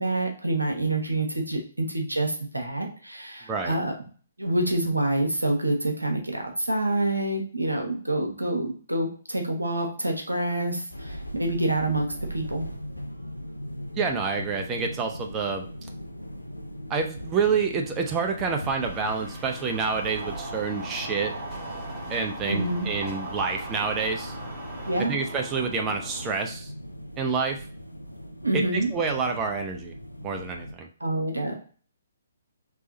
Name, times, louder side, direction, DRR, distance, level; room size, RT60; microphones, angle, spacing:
voice 1, 0.0-3.9 4.4-12.6 22.4-22.9 24.9-25.2 28.4-28.9 31.0-31.6, right 2 dB, 90° right, 2 dB, 1.1 m, -27 dB
sound 1, 10.9-30.7, equal, 90° left, 0.5 m, -40 dB
voice 2, 13.9-15.7 16.9-21.3 22.1-24.4 25.1-26.7 27.2-27.6 28.7-29.9 30.2-30.9, right 5 dB, 20° right, 2 dB, 0.5 m, -28 dB
sound 2, 18.8-25.0, left 1 dB, 15° left, 1.9 m, -43 dB
sound 3, 19.5-26.4, right 2 dB, 45° right, 0.9 m, -39 dB
3.4 x 3.2 x 3.9 m, 0.42 s
figure-of-eight pair, 130°, 0 cm